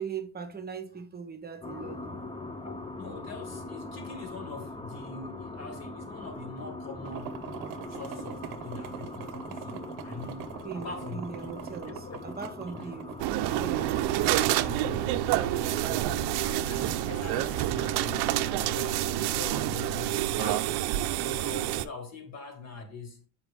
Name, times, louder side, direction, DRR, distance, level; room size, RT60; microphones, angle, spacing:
voice 1, 0.0-2.2 10.6-13.1 13.4-14.0, right 6 dB, 25° right, 1.0 m, -39 dB
sound 1, 1.6-19.9, left 2 dB, 15° left, 0.6 m, -42 dB
voice 2, 2.6-7.5 7.9-11.3 11.9-12.2 12.8-12.9 14.4-20.8 21.1-23.2, left 3 dB, 40° left, 2.0 m, -43 dB
sound 2, 7.0-15.5, right 9 dB, 55° right, 0.9 m, -43 dB
sound 3, 13.2-21.9, right 14 dB, 85° right, 0.6 m, -28 dB
7.9 x 5.3 x 3.5 m
cardioid pair, 135°, 39 cm